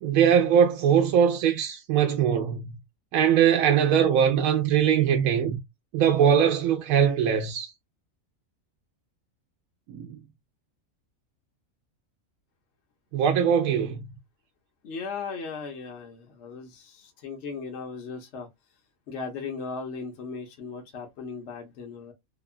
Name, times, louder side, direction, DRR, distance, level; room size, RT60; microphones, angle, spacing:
voice 1, 0.0-2.7 3.1-5.6 5.9-7.7 9.9-10.2 13.1-14.0, right 8 dB, 90° right, 1.0 m, -21 dB
voice 2, 14.8-18.5 19.1-22.1, left 5 dB, 60° left, 0.9 m, -37 dB
2.8 x 2.2 x 2.4 m
omnidirectional pair, 1.4 m